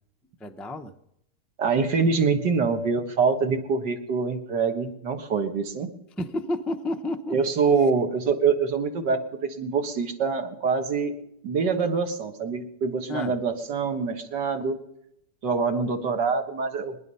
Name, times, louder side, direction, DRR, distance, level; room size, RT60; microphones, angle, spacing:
voice 1, 0.4-0.9 6.2-7.4 13.1-13.3, left 1 dB, ahead, 5 dB, 0.5 m, -30 dB
voice 2, 1.6-5.9 7.3-11.1 11.4-14.8 15.4-16.9, right 5 dB, 80° right, 5 dB, 2.2 m, -25 dB
23.0 x 10.5 x 5.5 m, 0.79 s
omnidirectional pair, 1.8 m